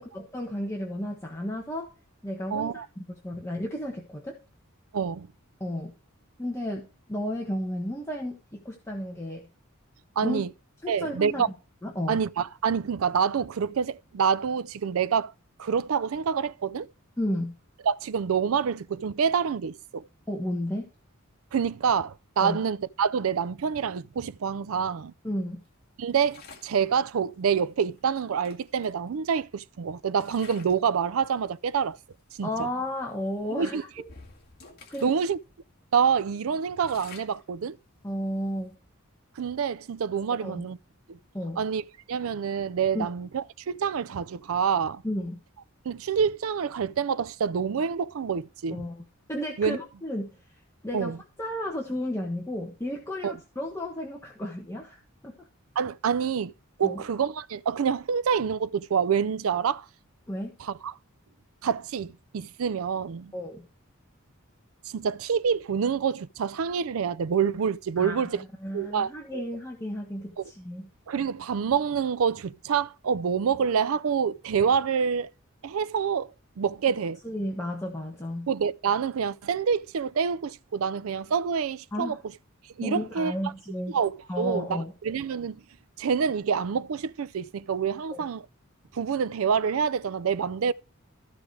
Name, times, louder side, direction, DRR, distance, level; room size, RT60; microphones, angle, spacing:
voice 1, 0.0-1.9 2.2-4.3 5.6-5.9 6.4-9.5 10.2-10.4 10.8-11.4 11.8-12.2 17.2-17.5 20.3-20.9 22.4-22.6 25.2-25.6 32.4-33.9 34.9-35.1 38.0-38.7 40.4-40.6 41.3-41.6 42.9-43.1 45.0-45.4 48.7-49.0 49.3-50.4 50.8-55.3 56.8-57.0 60.3-60.5 63.3-63.6 68.0-68.3 68.6-70.9 77.2-78.5 81.9-82.2 82.8-84.0 84.3-84.9 88.1-88.2 90.4-90.5, left 1 dB, 15° left, 1.3 m, -33 dB
voice 2, 2.5-2.9 4.9-5.3 10.2-10.5 10.9-11.5 12.1-15.3 15.6-16.9 17.8-20.0 21.5-25.1 26.0-32.0 32.4-32.7 33.5-33.8 35.0-35.4 35.9-37.8 39.4-40.8 41.1-41.2 41.6-45.0 45.8-48.8 49.6-49.8 50.9-51.2 53.2-53.3 55.8-56.5 56.8-59.9 60.6-60.9 61.6-63.3 64.9-68.4 68.7-69.5 70.4-70.5 71.1-75.3 75.6-76.3 76.6-77.2 78.5-82.2 82.8-83.5 83.9-85.6 86.0-88.5 88.9-90.7, right 6 dB, 70° right, 0.4 m, -27 dB
sound 1, 26.2-26.8 28.0-28.1 28.4-29.6 30.1-30.9 31.3-31.5 32.2-32.3 32.7-32.9 33.4-35.3 35.7-35.8 36.2-38.7, left 4 dB, 45° left, 2.0 m, -51 dB
14.5 x 5.0 x 4.7 m
head